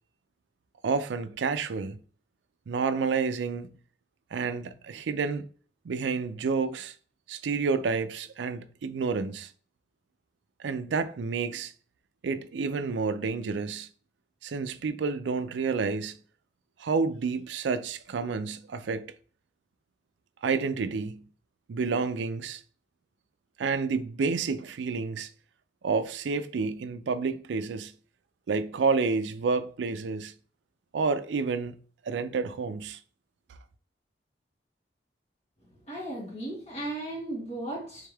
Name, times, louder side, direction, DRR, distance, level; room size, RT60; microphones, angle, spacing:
voice 1, 0.8-2.0 2.7-3.7 4.3-5.5 5.8-7.0 7.3-9.5 10.6-11.7 12.2-13.9 14.4-16.2 16.8-19.1 20.4-21.3 21.7-22.6 23.6-25.3 25.8-27.9 28.5-30.3 30.9-31.8 32.0-33.0, right 4 dB, 80° right, 0.4 m, -29 dB
voice 2, 35.9-38.1, right 1 dB, 40° left, 1.7 m, -36 dB
3.5 x 3.4 x 3.3 m
head